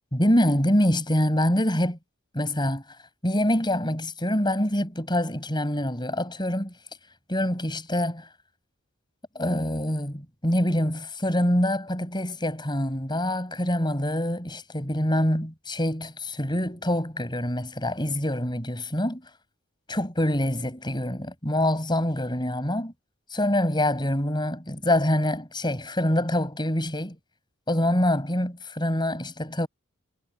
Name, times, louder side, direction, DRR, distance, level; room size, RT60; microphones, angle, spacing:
voice 1, 0.1-2.0 2.3-2.8 3.2-6.7 7.3-8.2 9.3-19.2 19.9-22.9 23.3-27.2 27.7-29.7, left 1 dB, 20° left, 7.9 m, -25 dB
head